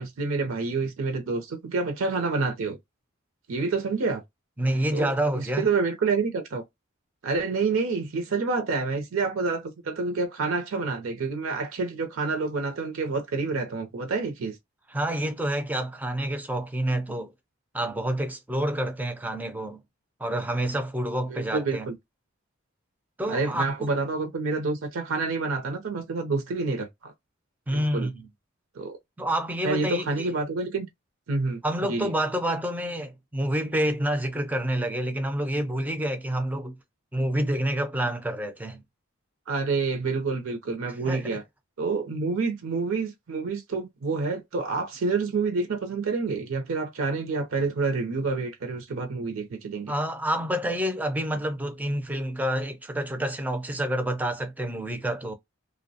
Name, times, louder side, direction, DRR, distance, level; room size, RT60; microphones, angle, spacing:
voice 1, 0.0-2.8 3.5-4.2 4.9-6.6 7.2-14.6 21.3-22.0 23.3-27.1 27.9-28.1 28.8-29.0 29.6-30.9 31.3-32.1 39.5-41.4 41.8-49.9, right 4 dB, 75° right, 0.5 m, -28 dB
voice 2, 4.6-5.7 14.9-17.3 17.7-19.8 20.2-21.9 23.2-23.9 27.7-28.3 29.2-30.3 31.6-36.8 37.1-38.8 41.0-41.4 49.9-55.3, right 1 dB, 10° right, 0.3 m, -28 dB
2.6 x 2.1 x 2.7 m
head